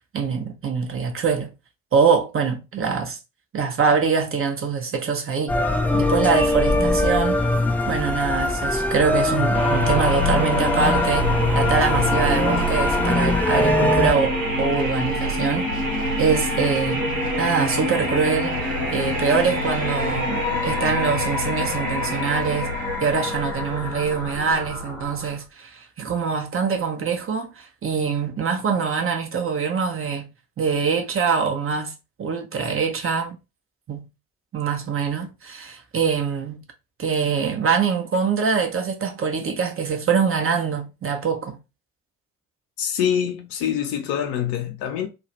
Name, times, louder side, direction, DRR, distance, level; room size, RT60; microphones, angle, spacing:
voice 1, 0.1-1.5 1.9-3.2 3.5-5.6 5.9-7.4 7.9-15.7 16.2-17.1 17.4-18.5 18.9-30.3 30.6-31.9 32.2-33.4 33.9-34.1 34.5-36.6 37.0-41.6, right 5 dB, 35° right, 0.8 m, -24 dB
sound 1, 5.5-14.1, left 1 dB, 5° left, 0.4 m, -22 dB
sound 2, 9.5-25.4, left 1 dB, 85° right, 1.1 m, -25 dB
voice 2, 42.8-45.1, left 9 dB, 65° left, 0.8 m, -25 dB
2.5 x 2.3 x 3.0 m
figure-of-eight pair, 45°, 39 cm